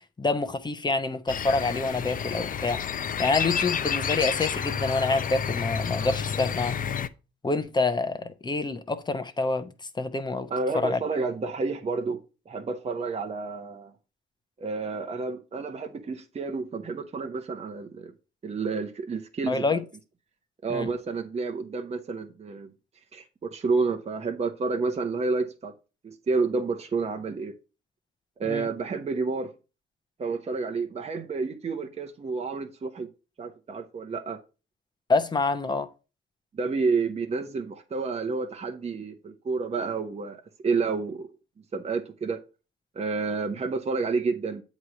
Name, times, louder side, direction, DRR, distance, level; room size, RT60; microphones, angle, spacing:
voice 1, 0.2-2.8 3.2-6.8 7.4-9.7 10.0-10.5 10.7-11.0 19.5-19.8 20.7-20.9 28.5-28.7 35.1-35.9, left 3 dB, 20° left, 0.8 m, -27 dB
sound 1, 1.3-7.1, left 7 dB, 45° left, 0.5 m, -30 dB
voice 2, 10.5-12.2 12.5-13.9 14.6-18.1 18.4-19.8 20.6-22.7 23.1-25.7 26.0-27.5 28.4-29.5 30.2-33.1 33.4-34.4 36.5-41.3 41.7-42.4 42.9-44.6, right 4 dB, 30° right, 0.9 m, -30 dB
8.1 x 3.2 x 6.2 m
cardioid pair, 90°, 20 cm